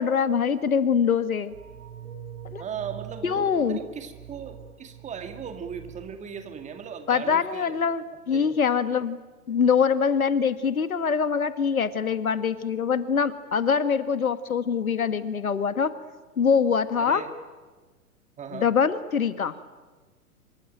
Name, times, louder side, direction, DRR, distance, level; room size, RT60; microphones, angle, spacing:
voice 1, 0.0-1.5 2.5-2.6 3.2-3.8 7.1-9.2 9.5-15.9 16.4-17.2 18.5-19.5, left 6 dB, 70° left, 12 dB, 1.7 m, -24 dB
sound 1, 1.5-7.5 7.8-7.9, right 9 dB, 65° right, 5.2 m, -45 dB
voice 2, 2.6-7.8 8.3-8.6 17.0-17.3 18.4-18.7, right 7 dB, 15° right, 7 dB, 2.1 m, -37 dB
26.0 x 24.5 x 9.1 m, 1.3 s
figure-of-eight pair, 110°, 44 cm